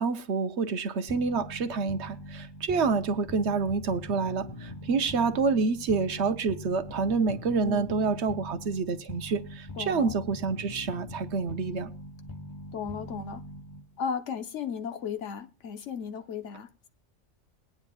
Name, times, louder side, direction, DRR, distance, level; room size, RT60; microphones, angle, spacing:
voice 1, 0.0-11.9, right 4 dB, 65° right, 1.1 m, -28 dB
sound 1, 1.1-14.0, left 1 dB, 20° left, 1.2 m, -42 dB
voice 2, 7.6-8.0 9.8-10.1 12.7-13.4 14.0-16.9, left 6 dB, 70° left, 1.2 m, -35 dB
20.5 x 9.5 x 2.3 m
omnidirectional pair, 1.3 m